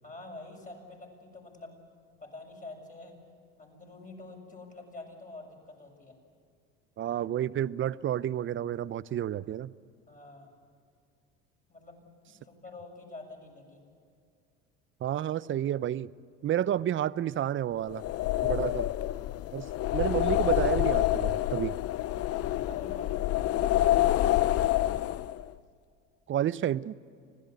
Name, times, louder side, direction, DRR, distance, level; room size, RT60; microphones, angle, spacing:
voice 1, 0.0-1.7 2.2-3.2 3.6-6.2 10.1-10.5 11.7-13.8 22.6-24.4, left 2 dB, 25° left, 1 dB, 7.0 m, -47 dB
voice 2, 7.0-9.7 15.0-16.1 16.4-18.0 18.4-18.9 19.5-21.8 26.3-26.9, right 11 dB, 35° right, 19 dB, 0.6 m, -30 dB
sound 1, 17.9-25.5, left 14 dB, 45° left, 0.6 m, -27 dB
25.5 x 17.0 x 8.2 m, 2.3 s
supercardioid pair, 85°, 33 cm